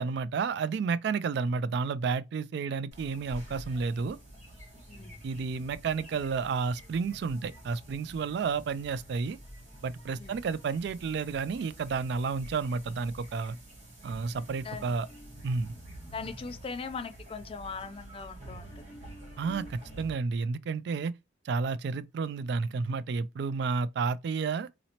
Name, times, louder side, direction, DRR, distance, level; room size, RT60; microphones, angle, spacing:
voice 1, 0.0-4.2 5.2-9.4 9.8-13.6 14.0-15.1 15.4-15.7 19.4-21.1 21.5-24.7, right 5 dB, 60° right, 0.3 m, -31 dB
sound 1, 2.9-20.1, right 1 dB, 35° right, 2.2 m, -48 dB
voice 2, 16.1-19.0, left 5 dB, 30° left, 0.4 m, -40 dB
4.0 x 2.9 x 2.8 m
head